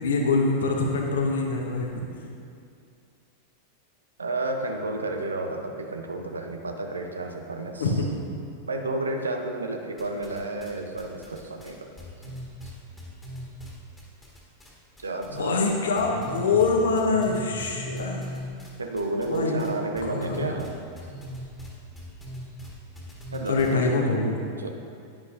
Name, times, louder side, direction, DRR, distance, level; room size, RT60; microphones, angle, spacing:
voice 1, 0.0-1.9 7.8-8.1 15.3-18.3 19.2-19.7 20.0-20.6 23.5-24.3, left 3 dB, 65° left, 1 dB, 1.2 m, -24 dB
voice 2, 4.2-7.9 8.7-11.9 15.0-15.6 18.8-20.7 23.3-24.7, right 2 dB, 75° right, 5 dB, 0.8 m, -31 dB
sound 1, 10.0-10.7 11.0-14.7 15.0-15.7 16.0-23.8, equal, 10° left, 1.8 m, -39 dB
10.0 x 9.7 x 2.6 m, 2.4 s
figure-of-eight pair, 90°, 0 cm